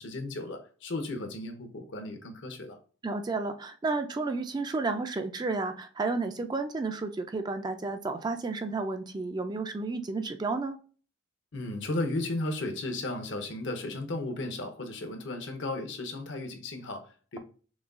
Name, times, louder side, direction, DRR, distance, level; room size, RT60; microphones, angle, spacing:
voice 1, 0.0-2.8 11.5-17.4, left 2 dB, 65° left, 5 dB, 0.8 m, -35 dB
voice 2, 3.0-10.8, right 3 dB, 20° right, 7 dB, 0.3 m, -32 dB
6.0 x 2.3 x 2.5 m, 0.40 s
head